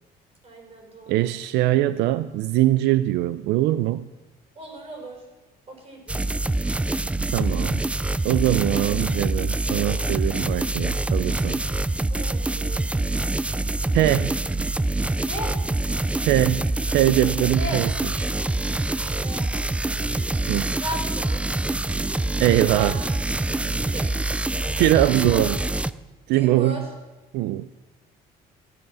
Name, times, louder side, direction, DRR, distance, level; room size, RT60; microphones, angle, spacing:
voice 1, 0.4-1.3 4.5-5.2 5.7-6.2 8.7-9.0 9.3-9.4 12.1-12.8 15.2-15.5 17.6-17.8 18.2-18.3 19.2-20.0 20.8-21.5 22.7-23.1 23.6-24.1 25.2-25.5 26.3-26.8, right 1 dB, 35° right, 2 dB, 5.1 m, -36 dB
voice 2, 1.1-4.1 7.3-7.8 8.2-11.6 13.9-14.4 16.3-17.9 20.5-20.7 22.4-23.0 24.8-25.6 26.3-26.9 27.3-27.7, right 15 dB, 85° right, 14 dB, 0.4 m, -22 dB
sound 1, 6.1-25.9, right 2 dB, 5° right, 0.3 m, -25 dB
16.0 x 7.1 x 6.2 m, 1.2 s
cardioid pair, 110°, 17 cm